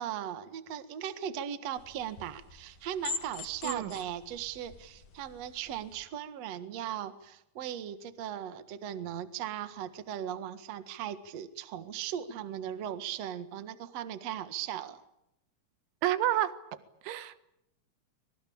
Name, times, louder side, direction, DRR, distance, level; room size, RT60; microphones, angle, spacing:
voice 1, 0.0-15.0, right 10 dB, 55° right, 11 dB, 1.9 m, -38 dB
sound 1, 1.8-6.0, left 4 dB, 45° left, 2.5 m, -43 dB
voice 2, 3.6-4.0 16.0-16.6 17.1-17.4, right 13 dB, 90° right, 13 dB, 3.6 m, -29 dB
25.5 x 23.5 x 8.7 m, 0.83 s
omnidirectional pair, 5.3 m